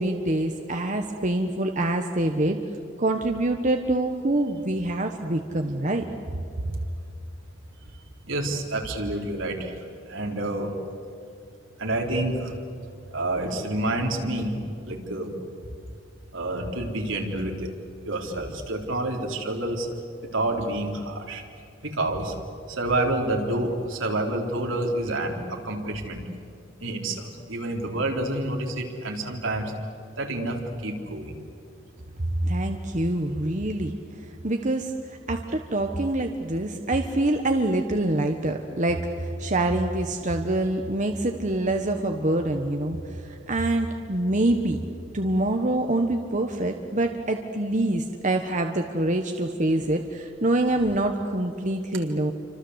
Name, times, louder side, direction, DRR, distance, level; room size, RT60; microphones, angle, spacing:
voice 1, 0.0-2.6 3.0-6.0 32.4-34.0 34.4-34.9 35.3-39.0 39.4-43.0 43.5-44.8 45.1-52.3, right 1 dB, 40° right, 4 dB, 1.3 m, -25 dB
voice 2, 8.3-9.7 10.1-10.7 11.8-12.5 13.1-14.6 14.9-15.3 16.3-17.5 18.1-19.9 20.2-21.4 21.8-22.3 22.7-26.2 26.8-29.7 30.2-30.6 30.8-31.3, right 1 dB, 75° right, 1 dB, 3.9 m, -28 dB
29.0 x 25.5 x 8.1 m, 2.5 s
head